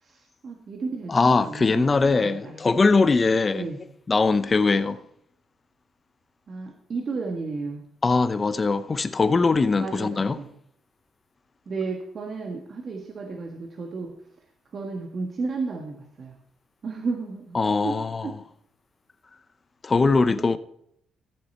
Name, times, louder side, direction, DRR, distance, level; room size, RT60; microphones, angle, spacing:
voice 1, 0.0-2.6 3.5-3.8 6.5-7.8 9.8-10.5 11.7-14.1 14.7-16.4 16.8-18.0 18.2-18.4 20.3-20.6, right 4 dB, 50° right, 1.4 m, -33 dB
voice 2, 1.1-3.7 4.1-5.0 8.0-10.4 17.5-18.3 19.8-20.6, left 4 dB, 30° left, 0.8 m, -21 dB
14.5 x 7.6 x 4.3 m
cardioid pair, 90°, 0 cm